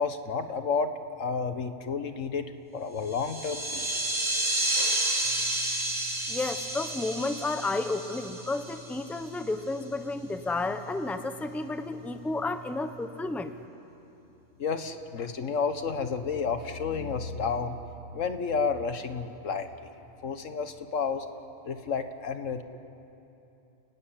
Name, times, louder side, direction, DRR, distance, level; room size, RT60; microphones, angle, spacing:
voice 1, 0.0-2.5 2.7-4.1 14.6-17.8 18.1-19.9 20.2-21.3 21.7-22.6, left 5 dB, 85° left, 9 dB, 1.6 m, -31 dB
sound 1, 3.1-9.1, right 1 dB, 80° right, 4.4 m, -30 dB
voice 2, 6.3-13.5, left 2 dB, ahead, 9 dB, 0.8 m, -32 dB
29.5 x 16.0 x 9.9 m, 2.9 s
omnidirectional pair, 1.3 m